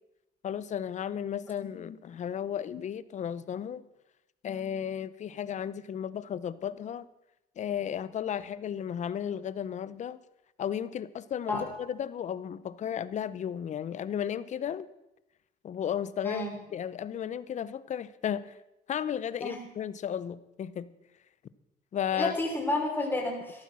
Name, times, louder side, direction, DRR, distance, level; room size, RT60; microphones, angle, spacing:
voice 1, 0.4-3.8 4.4-7.1 7.6-10.2 10.6-14.9 15.6-18.6 18.9-20.9 21.9-22.3, left 9 dB, 45° left, 17 dB, 0.8 m, -34 dB
voice 2, 22.2-23.6, left 2 dB, 10° left, -1 dB, 3.6 m, -30 dB
14.0 x 11.5 x 6.1 m, 0.91 s
cardioid pair, 110°, 17 cm